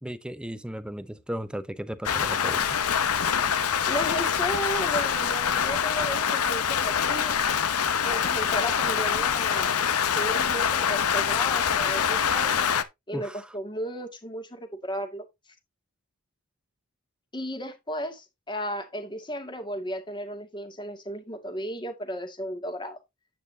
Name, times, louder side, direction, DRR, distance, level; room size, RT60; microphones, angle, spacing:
voice 1, 0.0-2.8 13.1-13.6, equal, 5° right, 0.7 m, -36 dB
Rain, 2.0-12.8, left 7 dB, 75° left, 0.9 m, -25 dB
voice 2, 3.9-7.4 8.0-9.9 10.1-12.7 13.1-15.2 17.3-23.0, equal, 20° left, 2.0 m, -34 dB
9.3 x 8.6 x 2.8 m
head